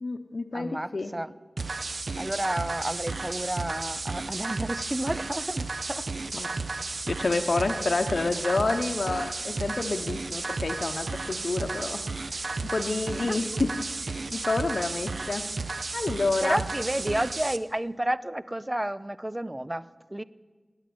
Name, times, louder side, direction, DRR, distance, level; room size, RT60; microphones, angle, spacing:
voice 1, 0.0-1.1 6.3-6.5 7.0-15.5 15.9-16.6, left 3 dB, 70° left, 5 dB, 0.9 m, -29 dB
voice 2, 0.5-1.3 2.2-6.1 13.3-13.4 16.4-20.2, right 1 dB, 20° right, 16 dB, 0.5 m, -31 dB
sound 1, 1.6-17.6, right 3 dB, 75° right, 0.7 m, -33 dB
18.5 x 8.9 x 8.6 m, 1.3 s
wide cardioid pair, 70°, 0 cm